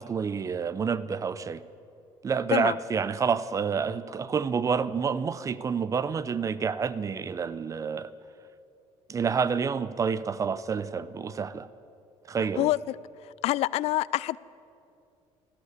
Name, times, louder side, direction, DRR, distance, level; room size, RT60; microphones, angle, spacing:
voice 1, 0.0-1.6 2.2-8.1 9.1-11.7 12.3-12.7, right 6 dB, 30° right, 0.6 m, -28 dB
voice 2, 12.6-13.0 13.2-14.4, left 15 dB, 65° left, 0.4 m, -26 dB
13.5 x 13.0 x 8.3 m
cardioid pair, 120°, 12 cm